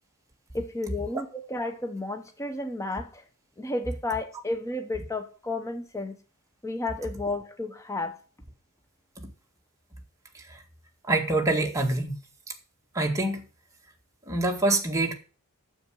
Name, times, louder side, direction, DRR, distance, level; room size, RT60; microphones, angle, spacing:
voice 1, 0.5-3.2 3.6-6.2 6.6-8.2, left 2 dB, 15° left, 1.0 m, -32 dB
voice 2, 11.1-12.2 13.0-13.4 14.3-15.1, right 2 dB, 15° right, 1.8 m, -25 dB
9.6 x 7.3 x 6.4 m
head